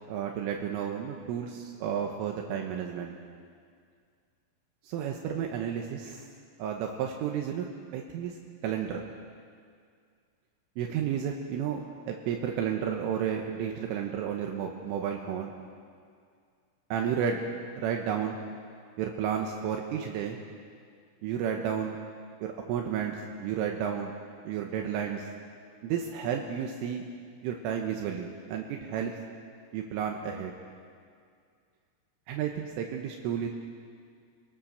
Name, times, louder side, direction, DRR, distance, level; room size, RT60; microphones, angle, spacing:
voice 1, 0.1-3.1 4.9-6.3 6.6-7.7 7.9-8.3 8.6-9.0 10.8-11.8 12.1-15.5 16.9-17.4 17.8-18.4 19.0-20.4 21.2-22.0 22.4-24.2 24.5-25.3 25.8-27.0 27.4-29.1 29.7-30.5 32.3-33.5, right 8 dB, 80° right, 1 dB, 3.7 m, -32 dB
27.0 x 19.0 x 6.5 m, 2.2 s
omnidirectional pair, 6.0 m